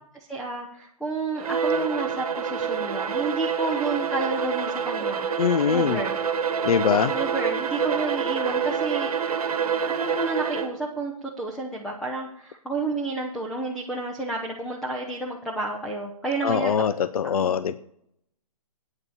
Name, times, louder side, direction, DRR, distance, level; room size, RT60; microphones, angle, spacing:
voice 1, 0.3-5.3 5.7-6.2 7.1-9.2 10.0-16.8 17.4-17.6, right 3 dB, ahead, 0 dB, 0.5 m, -30 dB
Bowed string instrument, 1.4-10.9, right 6 dB, 70° right, 1.2 m, -27 dB
voice 2, 5.4-6.0 6.6-7.1 16.4-17.7, left 7 dB, 70° left, 14 dB, 0.6 m, -22 dB
9.1 x 6.7 x 6.9 m, 0.70 s
hypercardioid pair, 155°, 20 cm